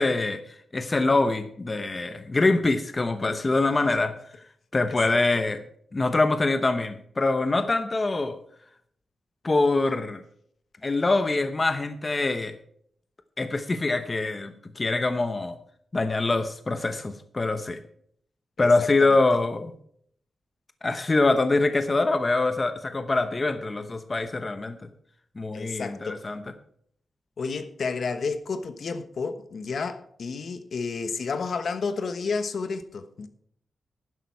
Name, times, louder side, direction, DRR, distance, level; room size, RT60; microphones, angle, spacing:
voice 1, 0.0-4.1 4.7-5.6 5.9-8.4 9.4-10.2 10.8-12.5 13.4-15.6 15.9-17.8 18.6-19.7 20.8-24.8 25.4-26.4, left 3 dB, 25° left, 0.9 m, -24 dB
voice 2, 4.9-5.2 18.6-18.7 25.5-26.2 27.4-33.3, left 4 dB, 55° left, 1.1 m, -31 dB
11.5 x 11.0 x 4.7 m
wide cardioid pair, 140°, 0 cm